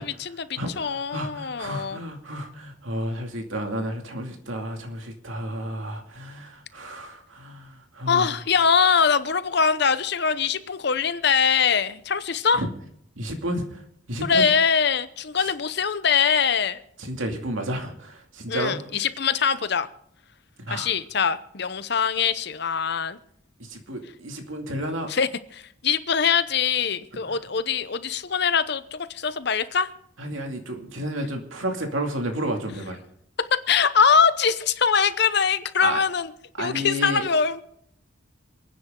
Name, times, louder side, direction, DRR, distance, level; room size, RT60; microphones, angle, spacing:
voice 1, 0.0-2.0 8.1-12.6 14.2-16.8 18.5-19.9 20.7-23.2 25.1-29.9 33.7-36.3 36.6-37.6, left 6 dB, 55° left, 13 dB, 0.8 m, -23 dB
voice 2, 0.6-8.4 12.5-12.7 13.2-13.8 14.1-14.5 15.4-15.5 17.0-18.8 20.7-20.9 23.7-25.1 27.3-27.4 30.2-33.0 35.8-36.0 36.6-37.2, right 1 dB, 85° right, 3 dB, 2.5 m, -31 dB
27.5 x 9.6 x 3.8 m, 0.70 s
head